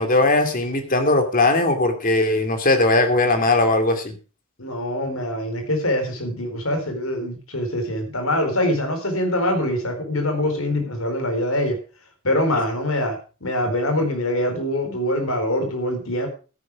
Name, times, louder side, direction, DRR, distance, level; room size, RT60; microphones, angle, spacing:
voice 1, 0.0-4.2 12.5-12.6, left 2 dB, 40° left, 6 dB, 2.7 m, -19 dB
voice 2, 4.6-11.8 12.2-16.3, left 1 dB, 85° left, 6 dB, 4.4 m, -24 dB
13.0 x 10.5 x 4.8 m, 0.35 s
head